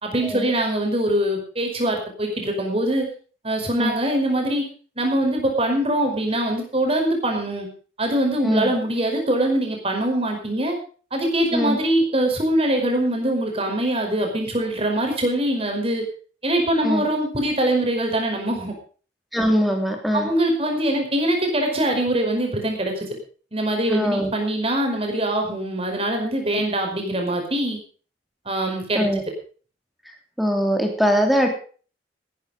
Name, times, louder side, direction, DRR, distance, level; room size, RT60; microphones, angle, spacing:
voice 1, 0.0-3.1 3.4-4.6 5.0-7.7 8.0-10.8 11.1-16.0 16.4-18.7 20.1-23.1 23.5-27.8 28.5-29.1, right 1 dB, 30° right, 3 dB, 5.2 m, -23 dB
voice 2, 19.3-20.3 23.9-24.3 28.9-29.2 30.4-31.5, equal, ahead, 3 dB, 2.9 m, -21 dB
14.5 x 13.0 x 5.2 m, 0.40 s
head